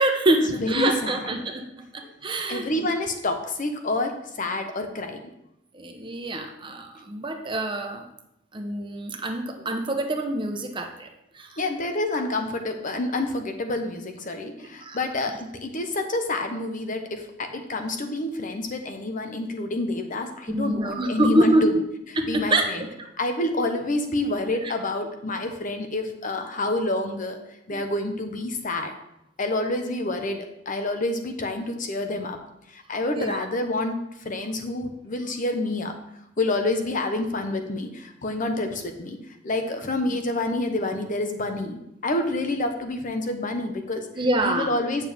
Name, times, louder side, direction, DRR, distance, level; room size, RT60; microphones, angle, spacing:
voice 1, 0.0-1.6 1.9-2.9 5.7-8.1 8.5-11.1 11.3-11.6 14.8-15.3 20.5-21.6 22.2-22.7 23.0-23.1 24.6-24.7 28.1-28.4 33.1-33.5 40.1-40.2 44.2-44.7, right 1 dB, 25° right, 4 dB, 0.8 m, -26 dB
voice 2, 0.6-1.2 2.5-5.2 11.6-21.7 22.3-22.9 23.2-27.4 27.7-28.9 29.4-32.4 32.7-35.9 36.4-39.2 39.4-44.1 44.4-45.1, left 2 dB, 45° left, 6 dB, 1.0 m, -28 dB
8.6 x 6.9 x 3.5 m, 0.82 s
head